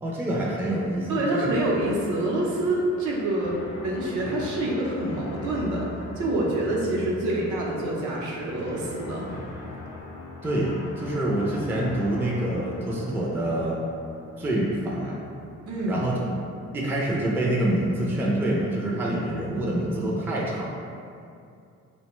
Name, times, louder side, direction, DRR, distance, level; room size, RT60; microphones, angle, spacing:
voice 1, 0.0-1.5 10.4-13.8 14.4-15.2 15.9-16.1 16.7-20.7, right 1 dB, 10° right, -4 dB, 0.3 m, -26 dB
voice 2, 1.1-3.6 3.8-9.3 15.7-16.0, right 1 dB, 75° right, -3 dB, 0.6 m, -26 dB
sound 1, 1.5-17.4, left 2 dB, 60° left, 0.5 m, -42 dB
2.5 x 2.1 x 2.9 m, 2.4 s
cardioid pair, 90°, 30 cm